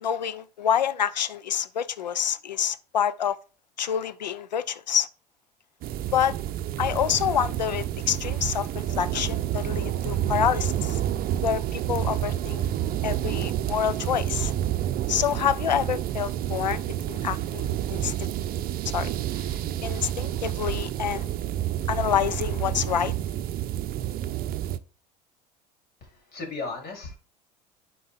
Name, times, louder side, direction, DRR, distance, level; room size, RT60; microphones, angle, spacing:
voice 1, 0.0-3.4 3.8-5.1 6.1-6.3 6.8-11.0 11.4-12.6 13.0-14.5 15.1-18.1 18.9-19.1 19.4-19.5 19.8-21.3 21.9-23.1, left 9 dB, 90° left, 0.5 m, -27 dB
sound 1, 5.8-24.8, right 12 dB, 45° right, 0.6 m, -29 dB
voice 2, 26.0-27.2, left 3 dB, 50° left, 3.8 m, -36 dB
11.0 x 4.3 x 3.6 m
hypercardioid pair, 70°, 21 cm